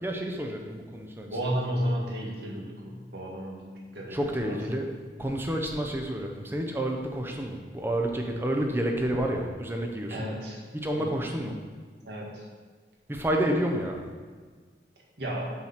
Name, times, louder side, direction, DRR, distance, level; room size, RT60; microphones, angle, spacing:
voice 1, 0.0-1.3 4.1-4.9 5.2-10.2 10.7-11.6 13.1-14.0, right 1 dB, 15° right, 2 dB, 0.7 m, -29 dB
voice 2, 1.2-4.6 10.1-10.6 11.0-11.2 12.0-12.4 15.2-15.5, equal, 70° right, -3 dB, 1.8 m, -33 dB
7.5 x 4.6 x 5.7 m, 1.5 s
head